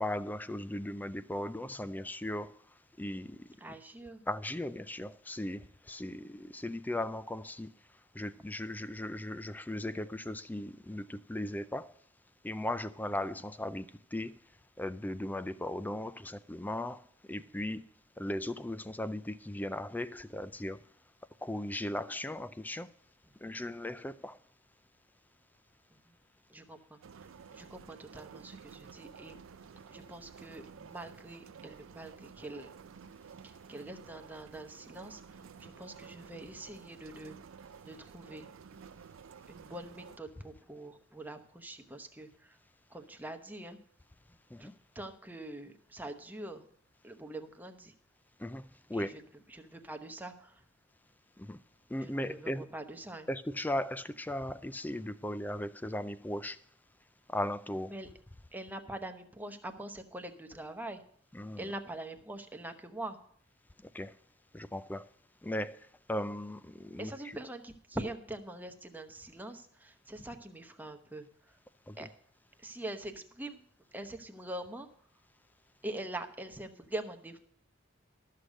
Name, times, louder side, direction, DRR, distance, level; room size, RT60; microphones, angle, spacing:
voice 1, 0.0-2.5 3.0-3.5 4.3-7.7 8.1-11.9 12.4-14.3 14.8-17.0 17.3-17.8 18.2-20.8 21.4-22.9 23.4-24.4 44.5-44.8 48.4-49.2 51.4-51.6 51.9-52.6 53.3-56.6 57.3-57.9 61.3-61.7 63.9-64.1 64.5-65.0 65.4-65.8 66.1-67.1 71.9-72.1, left 1 dB, 10° left, 0.4 m, -37 dB
voice 2, 3.6-4.2 23.4-23.5 25.9-26.1 26.5-29.4 29.9-32.7 33.4-37.4 37.8-38.5 39.5-42.6 42.9-43.8 44.6-44.7 44.9-46.7 47.0-47.9 48.9-49.2 49.5-50.6 52.0-53.3 57.9-58.1 58.5-61.0 61.6-63.2 67.0-71.6 72.0-72.1 72.6-73.6 73.9-74.9 75.8-77.4, right 1 dB, 10° right, 0.9 m, -44 dB
sound 1, 27.0-40.2, right 6 dB, 80° right, 0.5 m, -52 dB
13.0 x 6.6 x 6.3 m
head